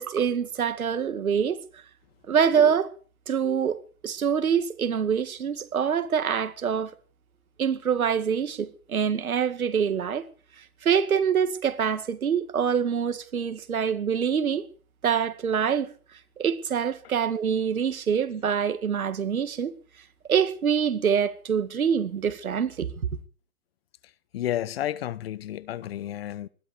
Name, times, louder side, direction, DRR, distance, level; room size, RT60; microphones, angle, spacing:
voice 1, 0.0-1.6 2.3-2.9 3.3-3.8 4.0-6.9 7.6-10.2 10.8-14.6 15.0-15.9 16.4-19.7 20.3-23.1, right 7 dB, 80° right, 2.1 m, -25 dB
voice 2, 24.3-26.5, left 12 dB, 45° left, 0.8 m, -31 dB
20.5 x 13.0 x 5.0 m
hypercardioid pair, 145°, 42 cm